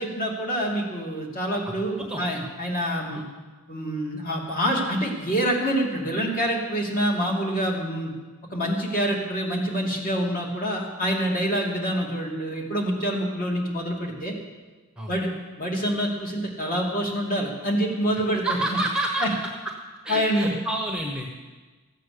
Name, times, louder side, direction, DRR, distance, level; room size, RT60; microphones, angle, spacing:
voice 1, 0.0-3.2 3.7-8.1 8.5-14.3 15.1-15.3 15.6-18.6 19.2-19.3 20.1-20.5, equal, 40° left, -1 dB, 2.7 m, -26 dB
voice 2, 1.6-2.2 3.1-3.2 15.0-15.2 18.3-19.3 20.0-21.3, right 1 dB, 5° right, -1 dB, 1.2 m, -29 dB
15.0 x 8.5 x 6.8 m, 1.3 s
head